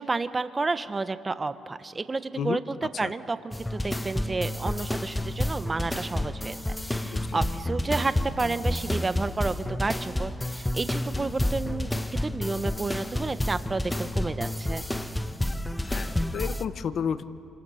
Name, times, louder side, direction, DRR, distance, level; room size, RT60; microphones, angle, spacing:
voice 1, 0.0-6.6 6.8-14.8, right 3 dB, 25° right, 12 dB, 1.0 m, -31 dB
sound 1, 3.5-16.6, left 1 dB, 10° left, 0.9 m, -30 dB
voice 2, 7.0-7.5 15.8-17.2, left 7 dB, 60° left, 13 dB, 0.9 m, -32 dB
28.5 x 26.0 x 5.7 m, 2.5 s
cardioid pair, 90°, 0 cm